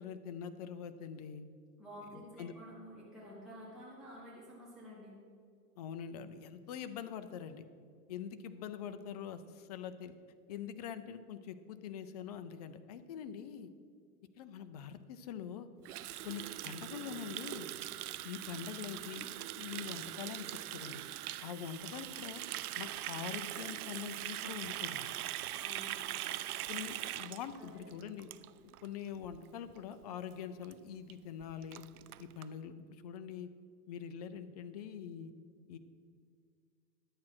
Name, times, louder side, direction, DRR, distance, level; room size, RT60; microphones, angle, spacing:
voice 1, 0.0-1.4 2.1-2.5 5.8-7.7 8.1-10.2 10.5-13.7 14.4-15.7 16.2-17.7 18.2-19.3 19.6-21.0 21.4-22.4 22.8-25.1 26.7-28.3 28.8-31.8 32.2-33.5 33.9-35.3 35.7-35.8, left 8 dB, 30° left, 11 dB, 0.4 m, -44 dB
voice 2, 1.8-5.2 25.6-25.9 27.6-27.9, equal, ahead, -9 dB, 3.0 m, -50 dB
Water tap faucet, 15.8-28.9 29.1-29.4 29.7-30.0 30.3-30.4 30.6-30.7 31.1-31.2 31.4-32.5, right 14 dB, 70° right, 0.6 m, -42 dB
11.0 x 8.6 x 6.0 m, 2.1 s
hypercardioid pair, 145°, 46 cm